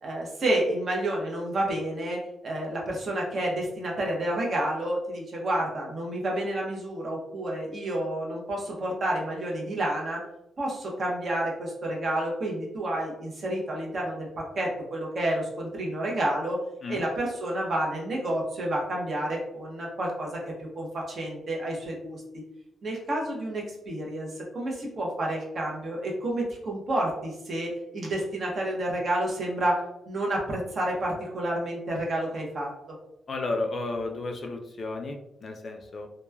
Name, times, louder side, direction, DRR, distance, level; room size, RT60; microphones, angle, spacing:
voice 1, 0.0-10.2 10.6-16.6 16.9-22.2 22.8-29.8 30.1-32.7, right 1 dB, 45° right, -2 dB, 0.8 m, -30 dB
voice 2, 33.3-36.1, left 2 dB, 45° left, 3 dB, 0.4 m, -33 dB
3.0 x 2.1 x 2.3 m, 0.83 s
cardioid pair, 115°, 0 cm